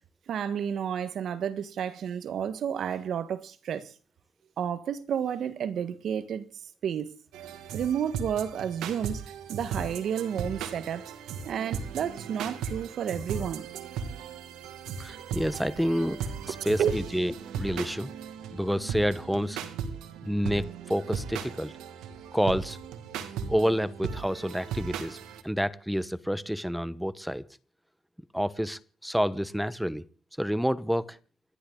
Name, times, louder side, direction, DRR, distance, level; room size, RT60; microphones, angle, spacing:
voice 1, 0.3-3.9 4.6-6.4 6.8-7.1 7.7-9.2 9.5-11.0 11.4-13.7 16.8-16.9, right 8 dB, 65° right, 1.5 m, -31 dB
sound 1, 7.3-25.4, right 6 dB, 90° right, 2.2 m, -37 dB
voice 2, 15.0-18.1 18.5-19.6 20.2-21.7 22.3-22.8 23.5-25.2 25.4-27.4 28.3-30.1 30.4-31.2, equal, ahead, 1.1 m, -29 dB
29.0 x 12.0 x 3.9 m
cardioid pair, 90°, 0 cm